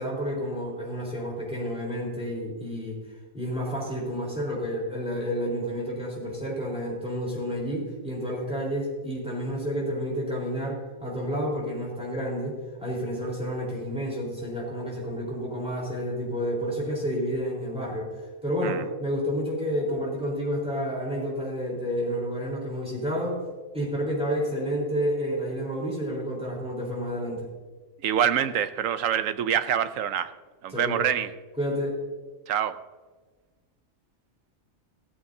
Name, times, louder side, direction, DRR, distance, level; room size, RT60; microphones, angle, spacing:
voice 1, 0.0-3.0 3.3-18.1 18.4-23.4 23.7-27.5 30.7-31.0 31.6-32.0, equal, 5° right, -4 dB, 3.9 m, -30 dB
voice 2, 28.0-30.3 30.6-31.3 32.5-32.8, right 9 dB, 75° right, 12 dB, 1.0 m, -25 dB
16.0 x 14.0 x 2.7 m, 1.3 s
omnidirectional pair, 1.4 m